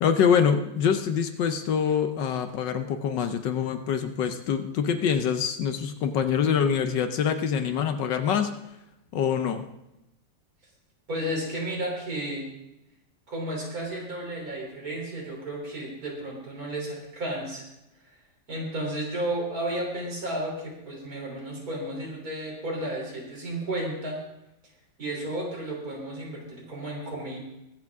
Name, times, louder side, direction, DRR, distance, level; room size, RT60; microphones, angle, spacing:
voice 1, 0.0-8.5 9.1-9.7, left 7 dB, 70° left, 8 dB, 1.4 m, -25 dB
voice 2, 11.1-12.5 13.3-17.6 18.5-24.2 25.0-27.4, right 1 dB, 50° right, -2 dB, 3.9 m, -33 dB
22.5 x 8.0 x 3.6 m, 0.90 s
omnidirectional pair, 2.1 m